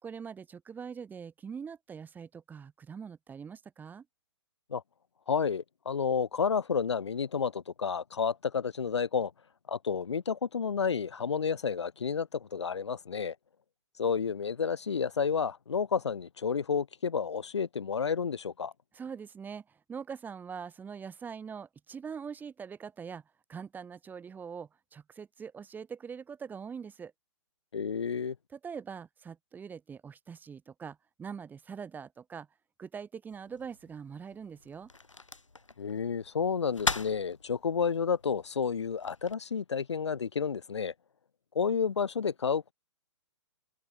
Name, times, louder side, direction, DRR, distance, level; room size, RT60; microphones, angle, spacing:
voice 1, 0.0-4.1 18.9-23.2 23.5-27.1 28.5-32.5 32.8-34.9, right 6 dB, 10° right, 4.2 m, -43 dB
voice 2, 5.3-9.3 9.7-13.4 14.0-18.7 27.7-28.4 35.8-40.9 41.5-42.7, left 6 dB, 65° left, 4.1 m, -30 dB
sound 1, 33.3-39.3, left 3 dB, 80° left, 3.5 m, -40 dB
figure-of-eight pair, 125°, 16 cm